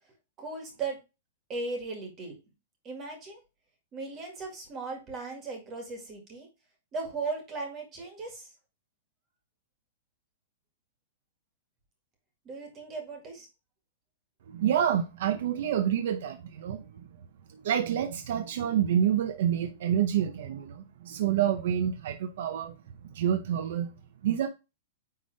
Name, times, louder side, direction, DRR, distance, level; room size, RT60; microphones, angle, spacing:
voice 1, 0.4-1.0 1.5-2.3 2.8-3.4 3.9-6.5 6.9-8.5 12.5-13.5, right 3 dB, 20° right, 1.8 m, -37 dB
voice 2, 14.5-17.1 17.5-22.8 23.0-23.9 24.2-24.5, right 9 dB, 50° right, 0.7 m, -28 dB
9.4 x 3.5 x 3.3 m
supercardioid pair, 180°, 0 cm